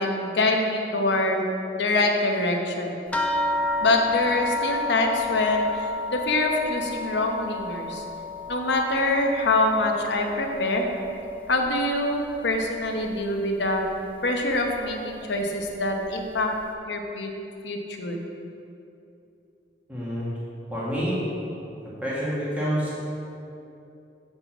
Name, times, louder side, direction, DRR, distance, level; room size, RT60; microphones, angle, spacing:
voice 1, 0.0-1.5 1.7-2.9 3.8-8.0 8.5-10.8 11.5-13.8 14.2-16.5 16.8-17.3 17.6-18.2, left 2 dB, 75° left, 2 dB, 1.0 m, -25 dB
sound 1, 3.1-12.0 12.3-13.1 13.9-14.0 14.4-14.6, left 2 dB, 10° left, 0.5 m, -31 dB
voice 2, 19.9-20.3 20.7-21.2 22.0-23.0, equal, 10° right, -8 dB, 1.7 m, -27 dB
7.8 x 5.5 x 5.9 m, 2.7 s
head